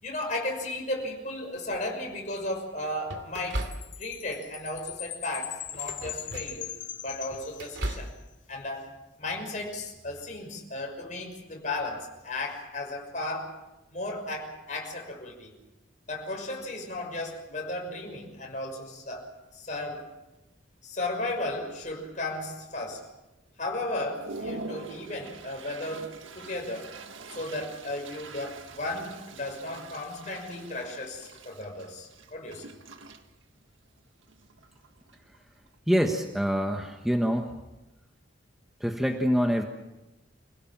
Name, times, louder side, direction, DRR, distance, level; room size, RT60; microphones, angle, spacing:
voice 1, 0.0-3.7 4.0-6.7 7.0-8.1 8.5-8.9 9.2-13.6 13.9-15.5 16.1-20.1 20.8-23.1 23.6-26.9 27.3-32.6, left 2 dB, 40° left, 1 dB, 6.2 m, -35 dB
sound 1, 1.7-2.2 3.1-4.3 4.7-5.0 5.7-6.7 7.1-8.2, right 1 dB, 60° right, 2.5 m, -37 dB
Chime, 3.6-8.1, left 12 dB, 70° left, 1.6 m, -40 dB
Toilet flush, 19.5-19.7 20.0-20.6 21.1-21.2 21.4-22.2 22.7-22.8 23.3-23.4 23.8-35.8, right 3 dB, 85° right, 1.7 m, -45 dB
voice 2, 35.9-37.6 38.8-39.6, equal, ahead, 3 dB, 1.4 m, -25 dB
27.5 x 17.5 x 7.5 m, 1.0 s
head